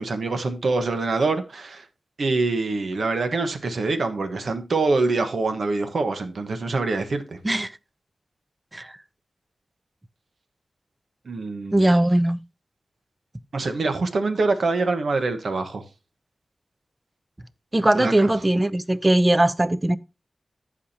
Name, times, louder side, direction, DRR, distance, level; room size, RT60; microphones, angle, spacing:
voice 1, 0.0-1.8 2.2-7.4 11.2-12.0 13.5-15.8 18.0-18.3, right 3 dB, 75° right, 1.2 m, -25 dB
voice 2, 11.7-12.4 17.7-20.0, right 1 dB, 25° right, 0.6 m, -20 dB
14.5 x 5.0 x 2.8 m
cardioid pair, 50°, 0 cm